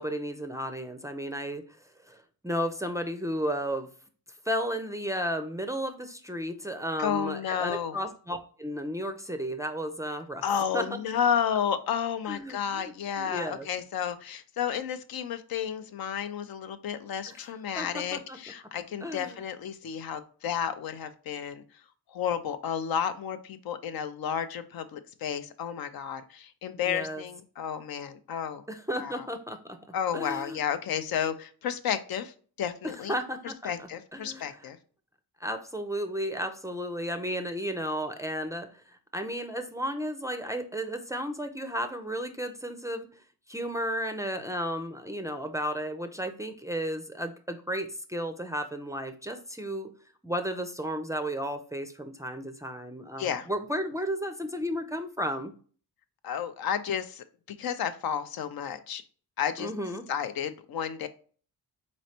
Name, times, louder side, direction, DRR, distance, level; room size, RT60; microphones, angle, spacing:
voice 1, 0.0-1.6 2.0-3.9 4.5-10.4 10.7-10.8 12.3-13.7 17.3-17.4 17.7-18.4 19.0-19.4 26.9-27.2 28.7-29.8 30.1-30.6 33.1-34.7 35.4-43.1 43.5-49.9 50.2-55.5 59.6-60.1, equal, 10° right, 7 dB, 0.4 m, -33 dB
voice 2, 7.0-8.0 10.4-21.6 22.1-28.6 29.0-29.3 29.9-33.1 33.4-34.8 53.2-53.5 56.2-57.2 57.6-59.0 59.4-59.7 60.1-61.1, left 8 dB, 70° left, 10 dB, 0.6 m, -32 dB
4.2 x 3.2 x 2.7 m, 0.42 s
cardioid pair, 90°, 38 cm